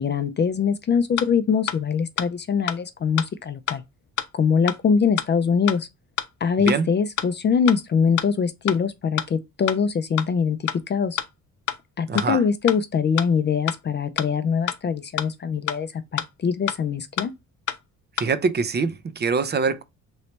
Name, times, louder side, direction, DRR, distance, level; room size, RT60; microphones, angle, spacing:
voice 1, 0.0-3.8 4.3-5.9 6.4-10.6 10.9-11.2 12.0-17.3, left 6 dB, 35° left, 0.5 m, -23 dB
sound 1, 1.2-1.3 1.7-1.8 2.2-2.3 2.7-2.8 3.2-3.3 3.7-3.8 4.2-4.3 4.7-4.8 5.2-5.3 5.7-5.8 6.2-6.3 6.7-6.8 7.2-7.3 7.7-7.8 8.2-8.3 8.7-8.8 9.2-9.3 9.7-9.8 10.2-10.3 10.7-10.8 11.2-11.3 11.7-11.8 12.2-12.3 12.7-12.8 13.2-13.3 13.7-13.8 14.2-14.3 14.7-14.8 15.2-15.3 15.7-15.8 16.2-16.3 16.7-16.8 17.2-17.3 17.7-17.8 18.2-18.3, left 12 dB, 80° left, 0.6 m, -27 dB
voice 2, 12.1-12.4 18.2-19.8, right 5 dB, 35° right, 0.5 m, -24 dB
3.1 x 2.8 x 3.1 m
cardioid pair, 90°, 30 cm